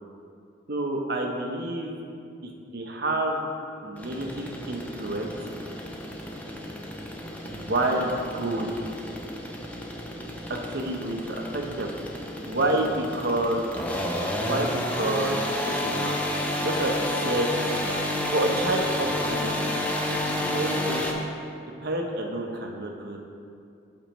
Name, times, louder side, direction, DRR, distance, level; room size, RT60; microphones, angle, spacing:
voice 1, 0.7-2.0 2.4-3.4 3.8-5.3 7.4-8.7 10.5-11.9 12.4-13.6 14.4-15.4 15.8-16.1 16.6-17.5 18.3-19.7 20.5-21.3 21.8-23.2, right 1 dB, 50° right, 1 dB, 0.7 m, -28 dB
sound 1, 4.0-21.1, left 1 dB, 10° left, 0.5 m, -31 dB
12.0 x 4.4 x 3.0 m, 2.5 s
head